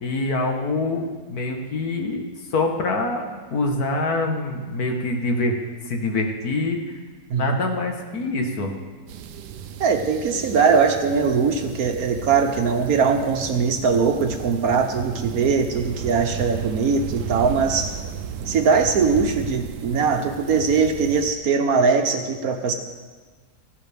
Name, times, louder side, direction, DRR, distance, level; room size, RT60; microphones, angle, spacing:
voice 1, 0.0-2.3 2.5-5.6 5.9-6.8 7.4-8.7, left 2 dB, 65° left, 3 dB, 1.8 m, -25 dB
sound 1, 9.1-21.3, right 7 dB, 85° right, 1.3 m, -34 dB
voice 2, 9.8-17.9 18.5-22.7, right 5 dB, 65° right, 5 dB, 1.3 m, -21 dB
16.0 x 11.0 x 3.5 m, 1.4 s
omnidirectional pair, 1.8 m